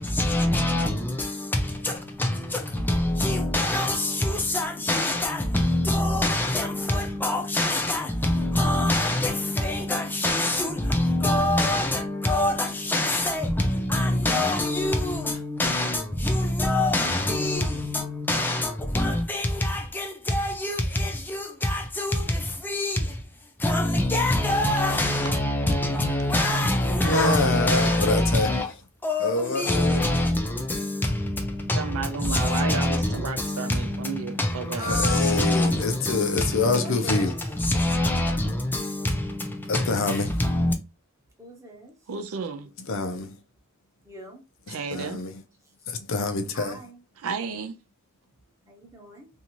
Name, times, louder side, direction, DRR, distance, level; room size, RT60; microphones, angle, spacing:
voice 1, 0.0-23.2 23.6-28.7 29.0-40.7, left 1 dB, 10° left, 0.4 m, -25 dB
voice 2, 27.0-28.5 29.2-30.1 34.9-37.3 39.7-40.3 42.9-43.3 44.9-45.3 45.9-46.8, left 3 dB, 60° left, 0.5 m, -26 dB
voice 3, 31.7-35.0 42.1-42.7 44.7-45.2 47.2-47.7, right 5 dB, 70° right, 0.4 m, -32 dB
voice 4, 34.7-35.5 36.6-37.4 41.4-41.9 44.0-44.4 46.5-47.0 48.7-49.3, equal, 15° right, 0.8 m, -38 dB
2.6 x 2.4 x 2.9 m
head